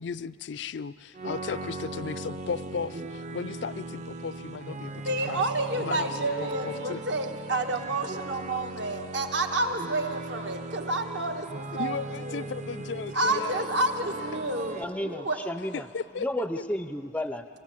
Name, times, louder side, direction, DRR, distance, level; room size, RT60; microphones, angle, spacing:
voice 1, 0.0-5.4 5.8-7.0 11.7-13.6 15.9-16.3, left 5 dB, 65° left, 16 dB, 0.4 m, -36 dB
sound 1, 1.1-14.8, right 2 dB, 40° right, 0.6 m, -38 dB
voice 2, 5.0-12.4 13.1-15.4, right 2 dB, 65° right, 5 dB, 1.3 m, -29 dB
voice 3, 14.8-15.9 16.2-17.5, left 1 dB, 5° left, 10 dB, 0.4 m, -32 dB
24.5 x 16.0 x 7.5 m, 2.8 s
head